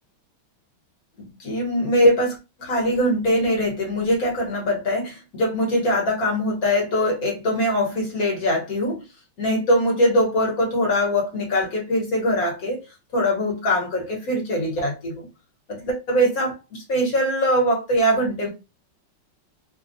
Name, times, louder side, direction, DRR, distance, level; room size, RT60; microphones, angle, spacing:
voice 1, 1.2-9.0 9.4-12.8 13.1-15.3 15.7-18.5, equal, 50° left, -1 dB, 1.4 m, -22 dB
3.4 x 2.3 x 2.6 m, 0.26 s
omnidirectional pair, 2.3 m